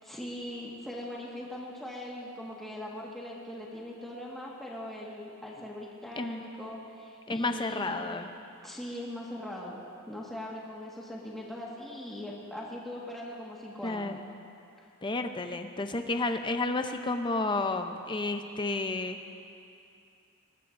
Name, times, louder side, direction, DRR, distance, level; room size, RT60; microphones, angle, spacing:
voice 1, 0.0-7.9 8.6-9.8 10.1-14.1 14.8-14.9, left 1 dB, ahead, -5 dB, 1.6 m, -40 dB
voice 2, 6.2-6.5 7.3-8.3 13.8-14.2 15.0-19.2, left 2 dB, 20° left, 6 dB, 0.6 m, -31 dB
20.0 x 19.5 x 2.6 m, 2.6 s
head